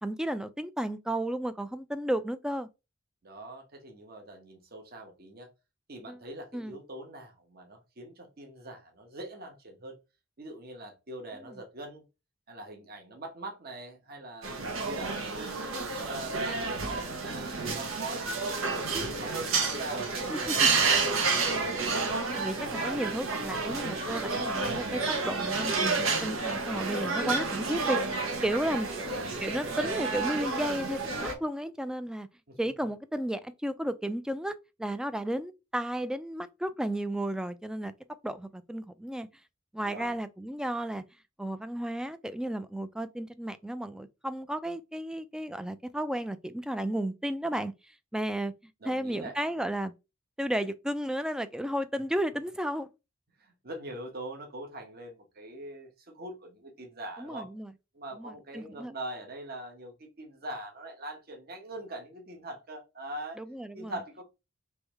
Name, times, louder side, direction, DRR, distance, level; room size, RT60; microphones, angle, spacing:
voice 1, 0.0-2.7 6.1-6.2 6.5-6.8 11.5-11.6 20.3-20.7 22.4-29.1 29.4-31.0 31.4-32.3 32.6-37.9 38.2-39.3 39.7-41.0 41.4-47.7 48.1-48.5 48.8-49.9 50.4-52.9 57.2-57.7 58.2-58.9 63.4-63.9, right 1 dB, 5° right, 0.3 m, -33 dB
voice 2, 3.2-5.5 5.9-10.0 10.4-12.0 12.5-21.4 24.4-24.5 28.8-29.2 32.5-32.6 39.8-40.2 48.8-49.3 53.4-57.5 57.9-63.4 63.7-64.2, right 1 dB, 50° right, 1.1 m, -43 dB
sound 1, 14.4-31.3, right 4 dB, 85° right, 1.2 m, -30 dB
3.5 x 3.1 x 4.6 m
head